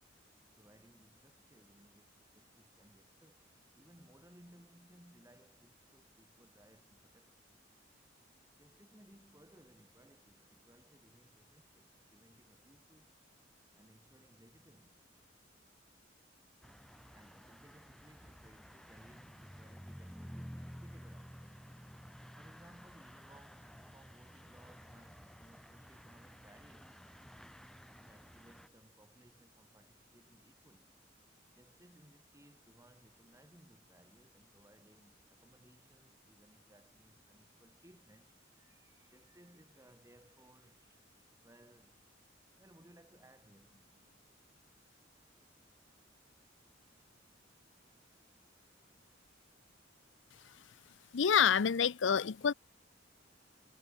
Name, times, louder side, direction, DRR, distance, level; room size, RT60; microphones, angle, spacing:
voice 1, 0.5-7.6 8.6-13.1 13.7-15.1 17.1-21.7 22.4-27.0 28.0-31.0 31.5-42.1 42.6-44.1, right 1 dB, 15° right, 3.7 m, -63 dB
sound 1, 16.6-28.7, equal, 5° left, 4.4 m, -53 dB
voice 2, 51.1-52.5, left 7 dB, 75° left, 0.6 m, -27 dB
head